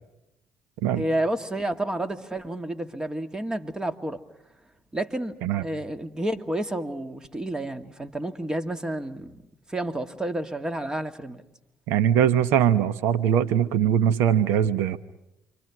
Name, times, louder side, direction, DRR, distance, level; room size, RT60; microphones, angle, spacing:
voice 1, 0.9-4.2 4.9-9.4 9.7-11.4, right 1 dB, 15° right, 9 dB, 2.2 m, -30 dB
voice 2, 11.9-15.0, right 9 dB, 80° right, 14 dB, 1.1 m, -21 dB
28.5 x 25.5 x 6.1 m, 0.89 s
supercardioid pair, 75°, 4 cm